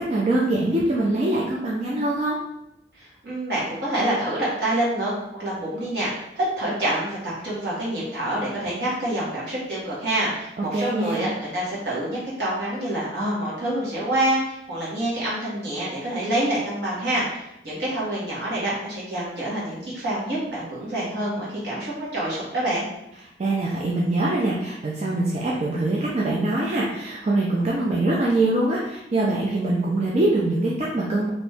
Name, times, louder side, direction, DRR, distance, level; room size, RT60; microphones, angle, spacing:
voice 1, 0.0-2.4 10.6-11.3 23.4-31.3, right 2 dB, 40° right, -4 dB, 0.4 m, -23 dB
voice 2, 2.9-22.9, right 1 dB, 70° right, -7 dB, 1.5 m, -27 dB
3.0 x 2.6 x 3.4 m, 0.85 s
head